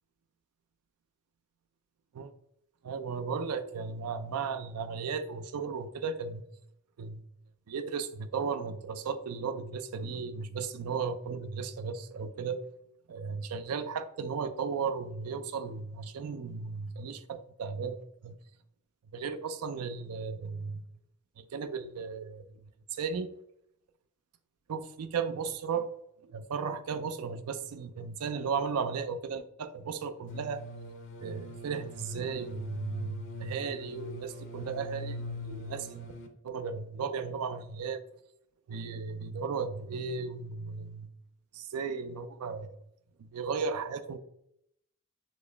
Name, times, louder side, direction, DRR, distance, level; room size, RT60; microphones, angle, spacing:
voice 1, 2.8-6.4 7.0-7.2 7.7-12.7 13.1-18.4 19.1-20.9 21.4-23.3 24.7-26.0 26.2-30.7 31.2-36.1 36.4-38.0 38.7-41.1 41.5-42.8 43.2-44.2, right 5 dB, 85° right, 0.4 m, -35 dB
sound 1, 30.3-36.3, left 1 dB, 55° left, 0.6 m, -42 dB
4.2 x 2.9 x 3.3 m
head